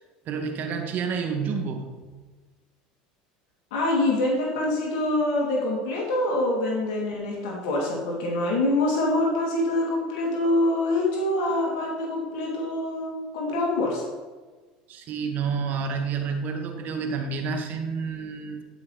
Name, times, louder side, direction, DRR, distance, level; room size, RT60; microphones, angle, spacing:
voice 1, 0.3-1.9 14.9-18.6, right 5 dB, 50° right, 3 dB, 1.8 m, -29 dB
voice 2, 3.7-14.0, left 1 dB, 70° left, -3 dB, 2.6 m, -25 dB
13.5 x 5.7 x 4.2 m, 1.3 s
hypercardioid pair, 85°, 4 cm